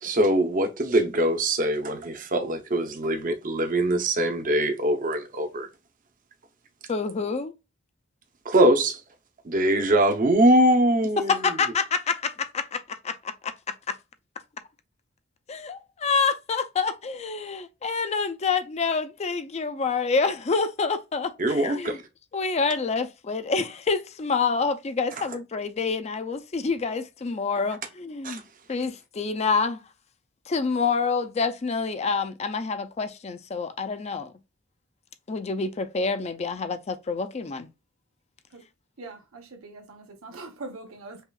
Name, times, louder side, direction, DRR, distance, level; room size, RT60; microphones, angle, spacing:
voice 1, 0.0-5.7 8.4-9.0 9.4-11.6 21.4-22.0 25.2-25.3 28.2-28.4, right 1 dB, 40° right, 0.7 m, -22 dB
voice 2, 6.9-7.5 11.2-13.5 13.9-14.0 15.5-22.0 22.3-28.4 28.7-29.8 30.5-34.3 35.3-37.7, left 4 dB, 30° left, 0.4 m, -27 dB
voice 3, 39.0-41.2, right 3 dB, 80° right, 1.1 m, -42 dB
5.5 x 2.4 x 2.3 m
head